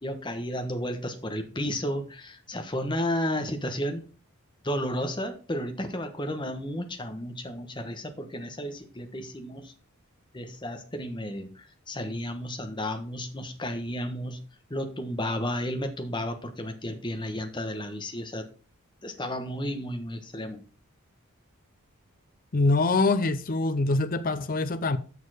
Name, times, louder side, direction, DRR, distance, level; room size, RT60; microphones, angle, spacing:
voice 1, 0.0-4.0 4.6-9.7 10.3-14.4 14.7-18.4 19.0-20.6, equal, 20° left, 1.2 m, -32 dB
voice 2, 22.5-25.0, left 3 dB, 40° left, 0.6 m, -24 dB
6.9 x 6.5 x 5.0 m
head